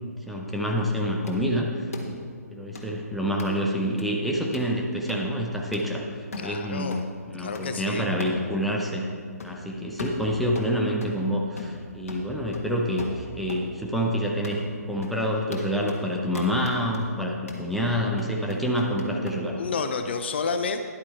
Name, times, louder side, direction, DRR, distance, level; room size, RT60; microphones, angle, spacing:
voice 1, 0.0-6.0 6.4-9.1 9.4-19.6, equal, ahead, -2 dB, 0.7 m, -27 dB
sound 1, 1.3-1.4 1.9-2.1 2.7-2.9 3.4-3.5 4.0-4.1 4.5-4.7 5.1-5.2 5.7-5.9 6.3-6.5 6.9-7.0 7.5-7.7 8.2-8.4 8.8-8.9 9.4-9.6 10.0-11.2 11.6-11.8 12.1-13.7 14.0-14.1 14.4-14.6 15.0-15.2 15.5-16.0 16.3-17.0 17.5-17.7 18.2-19.4, left 3 dB, 60° left, 1.5 m, -38 dB
voice 2, 6.4-7.1 7.4-8.1 19.6-20.8, left 5 dB, 40° left, 8 dB, 0.5 m, -30 dB
10.5 x 8.5 x 4.3 m, 2.1 s
figure-of-eight pair, 135°, 9 cm